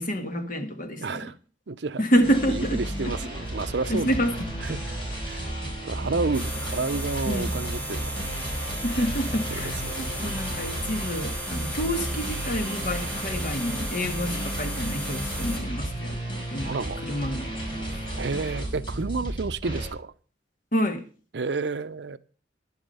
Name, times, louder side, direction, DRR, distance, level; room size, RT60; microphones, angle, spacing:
voice 1, 0.0-1.3 2.0-3.2 3.9-4.5 7.3-7.5 8.8-16.2 16.5-16.7 17.0-17.5 17.9-18.0 20.7-21.1, equal, 45° left, 1.7 m, -28 dB
voice 2, 1.0-1.3 1.7-2.0 2.5-4.1 4.6-5.0 5.2-5.5 5.8-8.2 9.8-10.3 16.6-17.0 18.1-20.1 21.3-22.2, right 4 dB, 65° right, 0.6 m, -30 dB
sound 1, 2.2-19.9, right 1 dB, 30° left, 5.6 m, -33 dB
sound 2, 6.3-15.6, equal, 10° left, 3.6 m, -36 dB
11.0 x 10.5 x 5.5 m
head